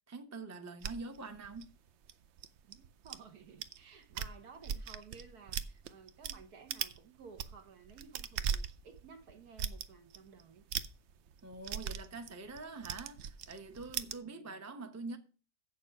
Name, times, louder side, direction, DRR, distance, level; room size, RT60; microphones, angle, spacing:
voice 1, 0.1-1.7 11.4-15.2, right 3 dB, 15° right, 0.6 m, -45 dB
sound 1, 0.8-3.2 3.6-3.8 4.0-6.4 6.7-7.0 7.3-14.2, right 8 dB, 90° right, 0.6 m, -39 dB
voice 2, 2.6-10.6 14.2-14.6, right 5 dB, 65° right, 1.6 m, -55 dB
7.8 x 6.6 x 5.9 m
omnidirectional pair, 1.8 m